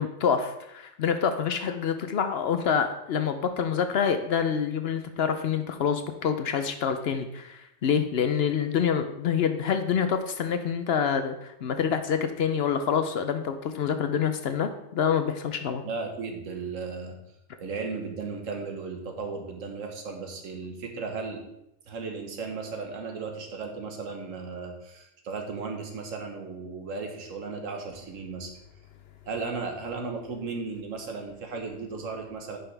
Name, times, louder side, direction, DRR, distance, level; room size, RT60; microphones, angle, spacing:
voice 1, 0.0-15.8, left 7 dB, 60° left, 8 dB, 0.7 m, -27 dB
voice 2, 15.8-17.2 17.6-21.4 21.9-28.5 29.3-32.6, right 4 dB, 80° right, 3 dB, 1.5 m, -35 dB
10.0 x 5.4 x 3.4 m, 0.85 s
omnidirectional pair, 1.3 m